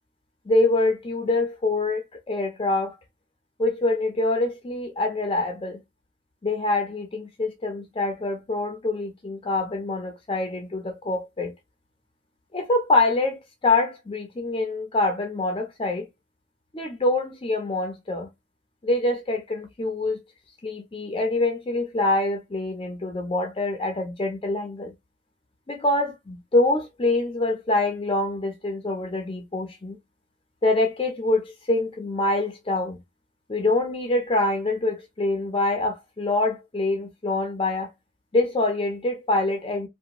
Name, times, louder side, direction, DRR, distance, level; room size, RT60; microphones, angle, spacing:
voice 1, 0.5-3.0 3.6-5.8 6.4-11.5 12.5-16.1 16.7-18.3 18.8-20.2 20.6-24.9 25.7-30.0 30.6-33.0 33.5-37.9 38.3-39.9, left 2 dB, 30° left, 0.5 m, -25 dB
2.8 x 2.2 x 2.5 m
head